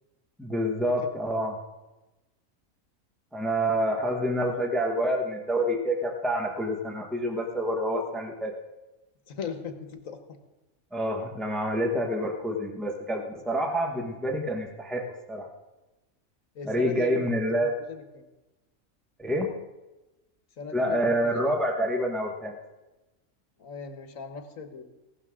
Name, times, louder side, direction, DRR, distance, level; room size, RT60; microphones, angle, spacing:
voice 1, 0.4-1.6 3.3-8.5 10.9-15.5 16.6-17.7 19.2-19.5 20.7-22.5, equal, ahead, 3 dB, 1.2 m, -27 dB
voice 2, 9.3-10.2 16.5-18.3 20.6-21.5 23.6-24.8, left 6 dB, 75° left, 7 dB, 1.6 m, -39 dB
16.0 x 12.5 x 3.7 m, 1.0 s
omnidirectional pair, 1.4 m